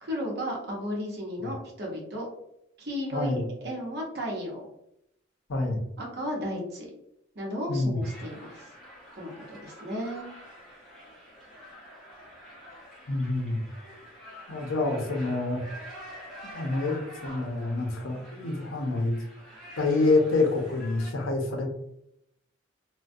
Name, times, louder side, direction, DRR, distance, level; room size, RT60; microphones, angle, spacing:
voice 1, 0.0-2.3 2.8-4.6 6.0-6.9 7.4-8.7 9.2-10.3, equal, 55° right, -2 dB, 0.8 m, -34 dB
voice 2, 3.1-3.4 5.5-5.8 7.7-8.0 13.1-13.6 14.5-15.6 16.5-19.2 19.8-21.7, left 2 dB, 85° left, 2 dB, 0.6 m, -27 dB
sound 1, 8.0-21.1, equal, ahead, 0.7 m, -47 dB
2.3 x 2.1 x 2.5 m, 0.79 s
head